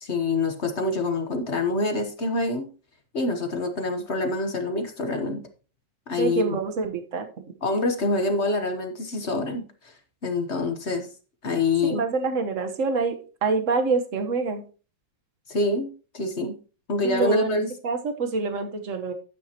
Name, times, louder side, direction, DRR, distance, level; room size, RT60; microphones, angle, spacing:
voice 1, 0.0-2.7 3.1-5.4 6.1-6.6 7.6-9.6 10.2-11.1 11.4-12.0 15.5-16.5 16.9-17.7, left 2 dB, 40° left, 6 dB, 1.3 m, -26 dB
voice 2, 6.2-7.3 11.8-13.2 13.4-14.6 17.0-19.1, right 4 dB, 45° right, 6 dB, 1.5 m, -26 dB
12.5 x 9.2 x 3.0 m, 0.36 s
omnidirectional pair, 2.0 m